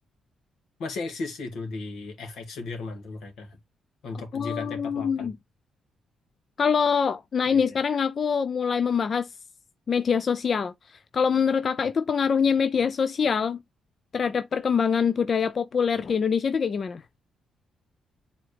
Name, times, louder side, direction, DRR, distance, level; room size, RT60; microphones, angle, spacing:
voice 1, 0.8-3.6 4.0-5.3 7.5-7.8, left 3 dB, 75° left, 2.2 m, -35 dB
voice 2, 4.3-5.3 6.6-9.3 9.9-13.6 14.1-17.0, left 6 dB, 40° left, 0.4 m, -24 dB
7.5 x 4.0 x 3.3 m
cardioid pair, 125°, 0 cm